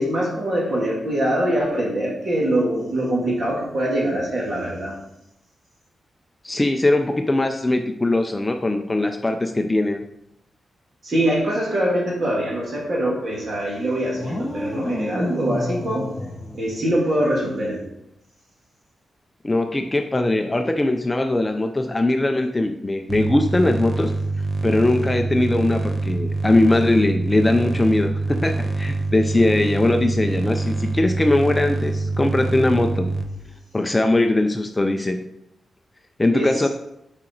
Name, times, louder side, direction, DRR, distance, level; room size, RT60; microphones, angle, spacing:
voice 1, 0.0-4.9 11.0-16.1 16.5-17.8 36.3-36.5, right 1 dB, 40° right, -2 dB, 2.3 m, -23 dB
voice 2, 6.4-10.0 19.4-24.1 24.6-33.1 33.7-35.2 36.2-36.7, left 2 dB, 15° left, 5 dB, 0.4 m, -20 dB
sound 1, 14.2-17.3, left 1 dB, 5° right, 1.5 m, -30 dB
sound 2, 23.1-33.2, right 3 dB, 25° right, 0.8 m, -25 dB
7.7 x 4.9 x 4.5 m, 0.82 s
wide cardioid pair, 155°, 0 cm